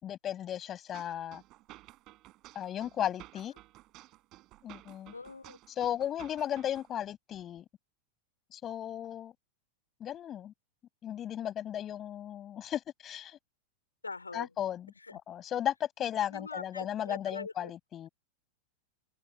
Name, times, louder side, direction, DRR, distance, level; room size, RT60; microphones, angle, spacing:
voice 1, 0.0-1.4 2.5-3.5 4.6-5.1 5.8-7.7 8.5-9.3 10.0-10.5 11.0-13.4 14.3-18.1, left 10 dB, 30° left, 7.1 m, -35 dB
sound 1, 0.9-6.9, right 18 dB, 35° right, 6.3 m, -54 dB
voice 2, 5.1-5.6 14.0-14.5 15.1-15.2 16.3-17.7, left 3 dB, 80° left, 4.1 m, -43 dB
figure-of-eight pair, 90°, 0 cm